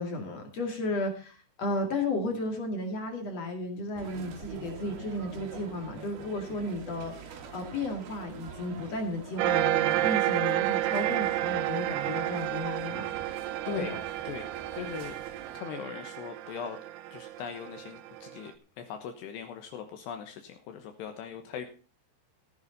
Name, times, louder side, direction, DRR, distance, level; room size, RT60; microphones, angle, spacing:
voice 1, 0.0-13.1 13.8-13.9, left 2 dB, 45° left, 4 dB, 2.8 m, -34 dB
sound 1, 4.0-15.6, right 6 dB, 65° right, 3.6 m, -45 dB
sound 2, 9.4-18.4, right 15 dB, 90° right, 1.8 m, -30 dB
voice 2, 14.3-15.2 15.5-16.8 17.1-21.7, left 8 dB, 75° left, 6 dB, 3.2 m, -40 dB
14.5 x 11.0 x 4.1 m, 0.36 s
omnidirectional pair, 5.1 m